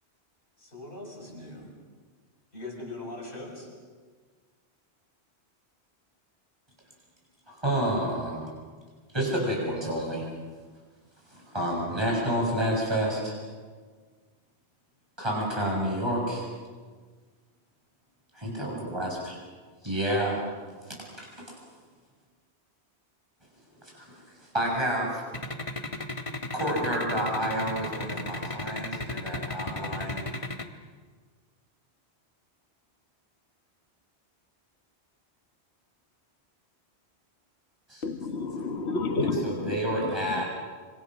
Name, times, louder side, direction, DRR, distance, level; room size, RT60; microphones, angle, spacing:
voice 1, 0.6-1.7 2.5-3.7, left 2 dB, 55° left, 6.6 m, -41 dB
voice 2, 7.5-8.4 9.1-10.2 11.3-13.4 15.2-16.5 18.3-19.4 19.8-20.4 21.2-21.3 23.9-24.1 24.5-25.2 26.5-30.4 37.9-38.0 39.4-40.4, right 1 dB, 25° right, 6.9 m, -29 dB
sound 1, 25.3-30.6, left 2 dB, 30° left, 1.5 m, -34 dB
voice 3, 38.0-40.4, left 3 dB, 75° left, 1.8 m, -30 dB
26.5 x 25.5 x 6.3 m
omnidirectional pair, 1.1 m